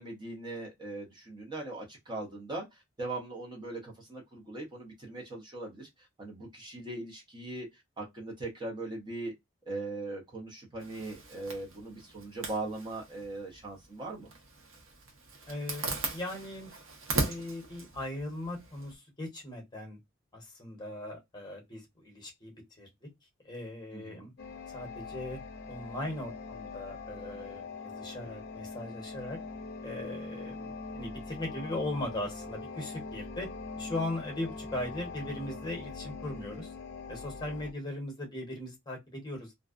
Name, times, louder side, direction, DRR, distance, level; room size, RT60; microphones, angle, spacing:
voice 1, 0.0-5.9 6.2-9.3 9.7-14.3 23.9-24.3, right 2 dB, 20° right, 0.7 m, -40 dB
Zipper (clothing), 10.8-18.9, right 3 dB, 80° right, 0.8 m, -39 dB
voice 2, 15.4-16.7 17.2-20.0 20.3-23.1 23.4-24.3 24.7-25.4 25.7-29.4 29.8-33.5 33.8-36.7 37.1-39.5, left 1 dB, 20° left, 0.9 m, -39 dB
sound 1, 24.4-37.7, left 4 dB, 50° left, 0.6 m, -42 dB
2.5 x 2.2 x 2.3 m
head